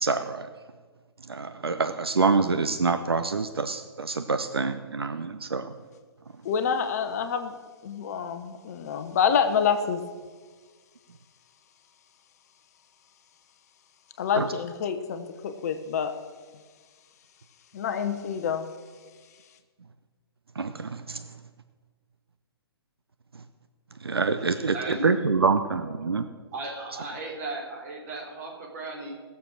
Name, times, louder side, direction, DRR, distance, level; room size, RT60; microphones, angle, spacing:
voice 1, 0.0-0.5 1.3-5.7 14.3-14.5 20.6-21.2 24.0-26.3, right 4 dB, 70° right, 9 dB, 0.7 m, -26 dB
voice 2, 6.4-7.5 7.8-10.0 14.2-16.1 17.7-18.7, left 7 dB, 40° left, 8 dB, 0.9 m, -27 dB
voice 3, 24.7-25.5 25.8-26.1 26.5-29.2, right 2 dB, 40° right, 0 dB, 3.3 m, -36 dB
18.5 x 7.1 x 6.1 m, 1.5 s
figure-of-eight pair, 125°, 13 cm